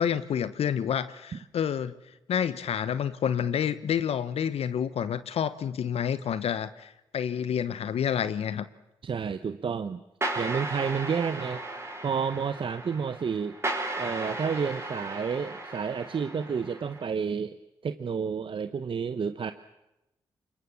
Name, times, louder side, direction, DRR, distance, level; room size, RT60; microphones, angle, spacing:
voice 1, 0.0-1.9 2.3-8.7, left 8 dB, 70° left, 14 dB, 1.0 m, -29 dB
voice 2, 9.0-10.0 10.4-11.6 12.0-13.6 14.0-17.6 17.8-19.5, right 6 dB, 55° right, 10 dB, 1.0 m, -30 dB
sound 1, 10.2-17.1, right 2 dB, 25° right, 5.2 m, -35 dB
25.5 x 22.0 x 7.3 m, 0.93 s
supercardioid pair, 45°, 11 cm